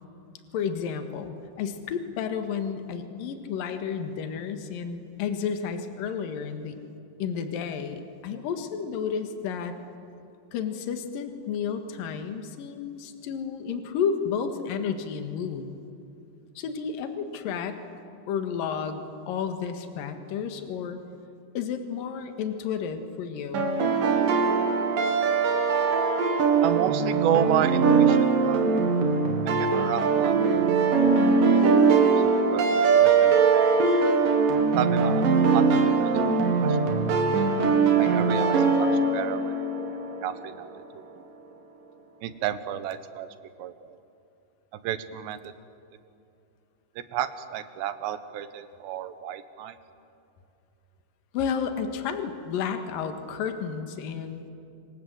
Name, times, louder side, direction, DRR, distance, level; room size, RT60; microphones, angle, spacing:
voice 1, 0.5-6.8 7.2-9.7 10.5-15.7 16.6-17.8 18.3-21.0 21.5-23.7 51.3-54.4, left 7 dB, 60° left, 7 dB, 3.0 m, -31 dB
sound 1, 23.5-40.4, right 5 dB, 55° right, 3.4 m, -21 dB
voice 2, 26.6-28.7 29.5-30.4 30.6-30.8 32.1-32.7 33.0-33.7 34.8-35.2 35.5-36.1 36.6-36.8 37.1-37.2 38.0-39.7 40.2-40.7 42.2-43.3 43.6-44.0 44.7-45.5 47.0-49.8, right 10 dB, 80° right, 12 dB, 3.2 m, -31 dB
27.0 x 25.5 x 8.0 m, 2.7 s
omnidirectional pair, 5.0 m